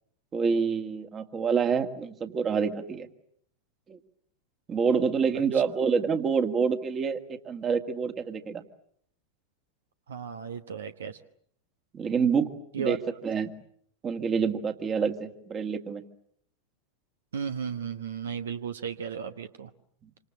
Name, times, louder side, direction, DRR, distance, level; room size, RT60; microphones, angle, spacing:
voice 1, 0.3-3.1 3.9-4.0 4.7-8.6 11.9-12.5 12.8-13.0 13.2-13.5 14.0-16.0, right 6 dB, 25° right, 8 dB, 2.0 m, -27 dB
voice 2, 10.1-11.2 12.7-13.0 17.3-19.7, right 7 dB, 65° right, 10 dB, 1.2 m, -34 dB
27.0 x 26.5 x 7.6 m, 0.67 s
figure-of-eight pair, 90°, 0 cm